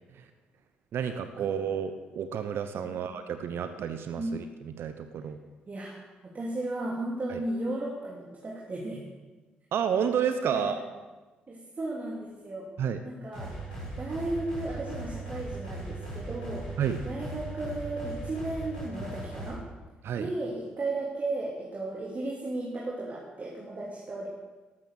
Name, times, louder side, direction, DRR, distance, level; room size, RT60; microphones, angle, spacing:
voice 1, 0.9-5.4 7.3-7.4 9.7-10.8 12.8-13.0 16.8-17.0 20.0-20.3, right 8 dB, 60° right, 9 dB, 1.0 m, -30 dB
voice 2, 5.7-9.0 10.5-10.8 11.5-12.7 13.0-13.5 14.0-19.6 20.2-24.3, right 2 dB, 35° right, -3 dB, 3.2 m, -35 dB
sound 1, 13.3-19.5, right 2 dB, 90° left, 6.9 m, -38 dB
14.0 x 12.0 x 6.8 m, 1.2 s
figure-of-eight pair, 40°, 5 cm